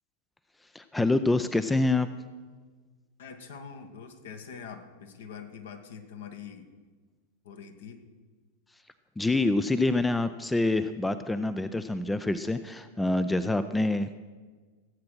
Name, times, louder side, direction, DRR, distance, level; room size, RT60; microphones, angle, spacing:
voice 1, 0.7-2.1 9.2-14.2, left 2 dB, 5° left, 12 dB, 0.5 m, -26 dB
voice 2, 3.2-6.7 7.4-8.0, left 6 dB, 60° left, 7 dB, 1.5 m, -44 dB
16.0 x 8.6 x 6.2 m, 1.4 s
figure-of-eight pair, 90°, 0 cm